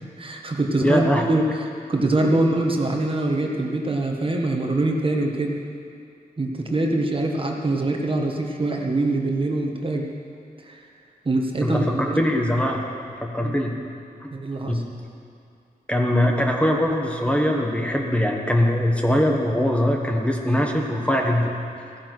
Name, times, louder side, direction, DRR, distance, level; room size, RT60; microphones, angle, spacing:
voice 1, 0.2-5.5 6.4-10.1 10.6-10.8 11.2-12.2 13.4-13.5 14.3-14.8, right 2 dB, 35° right, 1 dB, 1.6 m, -24 dB
voice 2, 0.8-1.2 11.6-12.8 13.2-13.7 14.2-14.3 14.7-14.8 15.9-21.5, equal, 5° left, 0 dB, 1.3 m, -21 dB
15.0 x 10.5 x 6.2 m, 2.5 s
wide cardioid pair, 85°, 16 cm